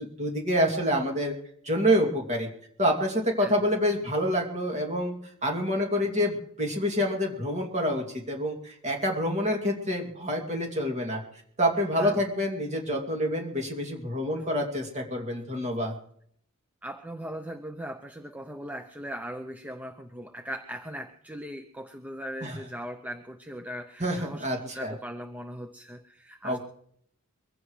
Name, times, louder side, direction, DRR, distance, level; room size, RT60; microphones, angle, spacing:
voice 1, 0.0-1.3 1.6-2.5 2.8-5.2 5.4-11.2 11.6-15.9 22.4-22.6 24.0-24.9 26.4-26.6, equal, 30° right, 1 dB, 2.5 m, -27 dB
voice 2, 16.8-26.6, equal, 5° right, 7 dB, 0.5 m, -39 dB
23.5 x 16.0 x 3.2 m, 0.66 s
head